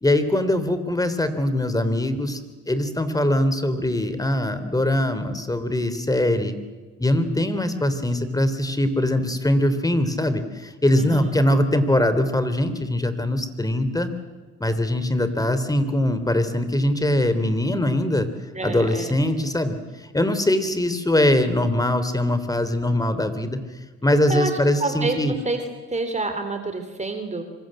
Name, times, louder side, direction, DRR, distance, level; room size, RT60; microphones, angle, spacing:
voice 1, 0.0-6.6 7.0-14.1 14.6-18.3 18.6-19.8 20.1-23.6 24.0-25.3, left 1 dB, 10° left, 11 dB, 3.3 m, -22 dB
voice 2, 11.0-11.4 18.5-19.3 24.3-24.5 24.8-25.6 25.9-27.4, right 2 dB, 25° right, 6 dB, 3.3 m, -28 dB
26.0 x 25.0 x 7.8 m, 1.3 s
cardioid pair, 90°, 30 cm